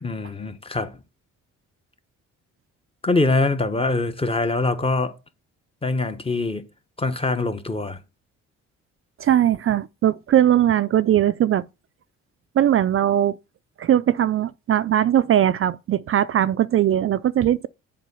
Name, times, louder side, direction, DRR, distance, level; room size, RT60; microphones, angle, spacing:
voice 1, 0.0-1.0 3.0-5.1 5.8-6.7 7.0-8.0, left 2 dB, 20° left, 1.2 m, -23 dB
voice 2, 9.2-11.7 12.6-13.4 13.8-17.7, right 11 dB, 45° right, 0.4 m, -19 dB
7.4 x 4.5 x 7.0 m
cardioid pair, 90°, 30 cm